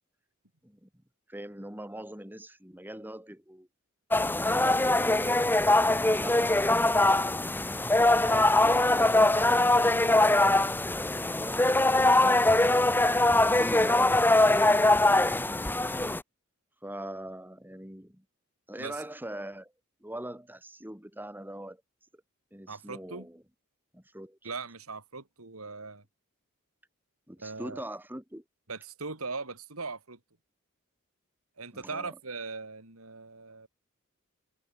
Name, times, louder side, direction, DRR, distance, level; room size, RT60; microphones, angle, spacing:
voice 1, 1.3-3.7 4.4-5.8 6.1-7.1 8.1-12.4 13.4-14.2 14.5-14.8 16.8-18.2 18.7-19.7 20.0-21.8 22.5-23.4 23.9-24.4 27.3-28.4 31.7-32.2, right 1 dB, 10° right, 3.7 m, -42 dB
sound 1, 4.1-16.2, left 2 dB, 10° left, 0.9 m, -22 dB
voice 2, 22.7-23.3 24.4-26.0 27.4-27.9 28.7-30.2 31.6-33.7, right 4 dB, 90° right, 3.4 m, -39 dB
head